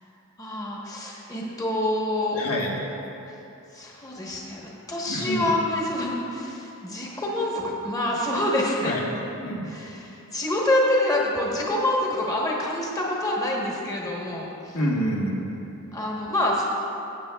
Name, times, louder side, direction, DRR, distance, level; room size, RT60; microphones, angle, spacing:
voice 1, 0.4-2.4 3.3-3.4 3.7-9.0 9.6-14.8 15.9-16.6, left 1 dB, 15° left, -3 dB, 1.1 m, -26 dB
voice 2, 2.3-2.7 5.1-5.5 8.8-9.0 9.4-9.8 14.7-15.6, equal, 80° left, -2 dB, 1.5 m, -27 dB
15.5 x 8.0 x 2.3 m, 3.0 s
head